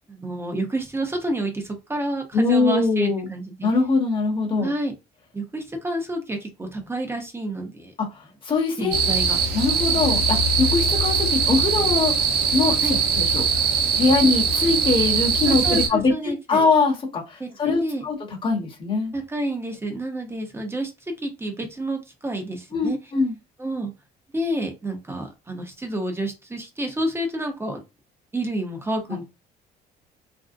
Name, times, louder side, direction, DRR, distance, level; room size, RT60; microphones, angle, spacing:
voice 1, 0.1-3.7 4.6-4.9 5.3-7.9 8.8-9.4 9.9-10.0 12.8-13.0 14.2-14.3 15.5-16.6 17.4-18.1 19.1-20.9 21.2-23.0 23.6-23.9 24.3-27.8 28.3-29.2, right 1 dB, 15° right, 4 dB, 0.7 m, -29 dB
voice 2, 2.3-3.3 3.6-4.7 8.0-9.1 9.5-12.1 12.5-13.7 13.9-19.1 22.7-23.3, left 3 dB, 30° left, -1 dB, 0.9 m, -22 dB
sound 1, 8.9-15.9, right 5 dB, 75° right, 0.7 m, -21 dB
2.6 x 2.0 x 2.4 m, 0.26 s
cardioid pair, 110°, 17 cm